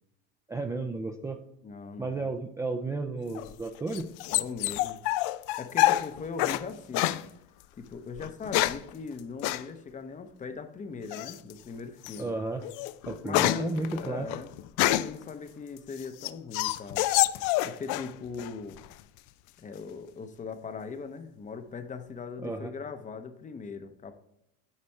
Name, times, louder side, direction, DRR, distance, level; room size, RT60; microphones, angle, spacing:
voice 1, 0.5-1.4 2.0-4.1 12.2-12.6 13.1-14.3 22.4-22.7, right 3 dB, 10° right, 5 dB, 0.4 m, -33 dB
voice 2, 1.6-2.3 4.3-5.0 5.6-7.3 7.7-12.4 13.2-14.5 14.8-17.1 17.6-18.8 19.6-24.1, left 5 dB, 25° left, 9 dB, 0.7 m, -40 dB
sound 1, 3.4-6.6 6.9-7.2 8.2-8.9 9.4-9.6 11.1-11.5 12.0-12.2 12.6-15.2 15.8-18.1 18.4-19.0, left 15 dB, 75° left, 0.5 m, -27 dB
8.7 x 4.1 x 4.6 m, 0.81 s
cardioid pair, 120°, 31 cm